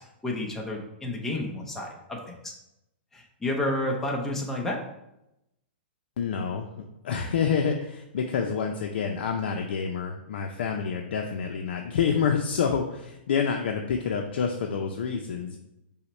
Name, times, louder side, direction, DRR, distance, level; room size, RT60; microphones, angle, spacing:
voice 1, 0.2-2.5 3.1-4.8, left 1 dB, 5° left, 0 dB, 0.6 m, -30 dB
voice 2, 6.2-6.7 7.0-15.6, left 6 dB, 70° left, 3 dB, 0.5 m, -28 dB
5.5 x 2.1 x 4.2 m, 0.87 s
hypercardioid pair, 160°, 6 cm